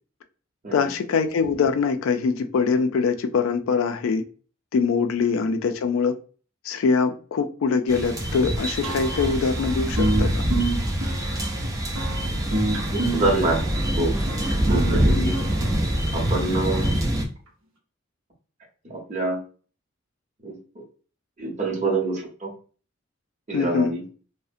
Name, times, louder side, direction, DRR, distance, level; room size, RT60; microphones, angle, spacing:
voice 1, 0.7-4.2 4.7-6.2 6.6-10.5 14.7-14.8 15.2-15.3 23.5-23.9, left 5 dB, 90° left, 0.3 m, -23 dB
sound 1, 7.9-17.3, equal, 15° right, 0.3 m, -25 dB
sound 2, 8.8-16.2, right 2 dB, 90° right, 0.7 m, -29 dB
voice 2, 12.9-14.1 14.7-15.5 16.1-17.0 18.8-19.4 20.4-20.8 21.4-22.5 23.5-24.0, right 2 dB, 35° right, 0.8 m, -26 dB
2.4 x 2.1 x 2.5 m
head